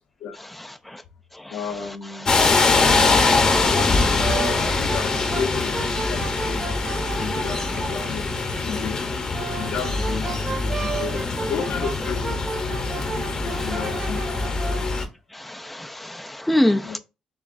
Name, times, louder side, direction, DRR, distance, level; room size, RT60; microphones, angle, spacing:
voice 1, 0.5-1.0 1.3-1.6 2.2-2.3 4.5-5.0 13.5-13.8 15.3-17.0, left 1 dB, 5° left, 0.3 m, -26 dB
voice 2, 1.5-3.2 4.6-8.3 8.6-9.0 9.6-12.4 13.0-14.5 16.8-17.0, left 6 dB, 70° left, 0.7 m, -33 dB
sound 1, 2.3-15.0, left 3 dB, 35° left, 0.7 m, -23 dB
Brass instrument, 2.8-8.2 9.1-14.9, right 4 dB, 30° right, 1.1 m, -34 dB
6.9 x 2.4 x 2.5 m
cardioid pair, 140°, 2 cm